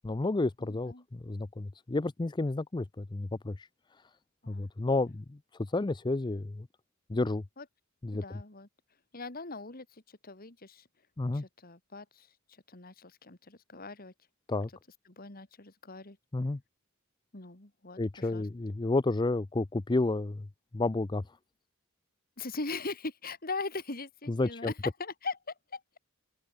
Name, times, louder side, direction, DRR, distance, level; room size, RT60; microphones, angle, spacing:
voice 1, 0.0-3.7 4.5-6.7 7.1-7.4 8.0-8.2 11.2-11.4 14.5-14.7 16.3-16.6 18.0-20.5 20.7-21.2 24.3-24.7, left 2 dB, 20° left, 0.5 m, -31 dB
voice 2, 0.6-1.0 4.4-4.7 7.6-7.7 8.1-8.7 9.1-10.9 11.3-12.3 12.7-14.1 14.5-14.6 15.1-16.2 17.3-18.5 22.4-26.0, left 3 dB, 45° left, 2.6 m, -40 dB
head